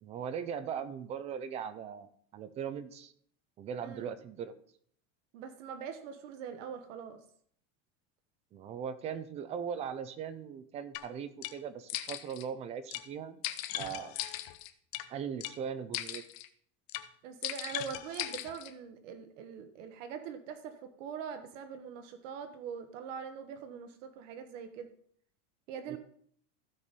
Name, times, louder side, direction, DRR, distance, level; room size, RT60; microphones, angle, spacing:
voice 1, 0.0-3.1 3.6-4.6 8.5-13.4 13.7-14.2 15.1-16.2 25.9-26.0, right 7 dB, 20° right, 12 dB, 0.3 m, -39 dB
voice 2, 5.3-7.2 17.2-24.9 25.7-26.0, right 7 dB, 75° right, 8 dB, 1.3 m, -43 dB
sound 1, 10.9-11.0 11.4-11.5 11.9-12.5 12.9-13.0 13.4-15.0 15.4-15.5 15.9-16.5 16.9-17.1 17.4-18.7, left 15 dB, 45° left, 0.8 m, -38 dB
15.5 x 5.2 x 4.1 m, 0.62 s
supercardioid pair, 165°, 38 cm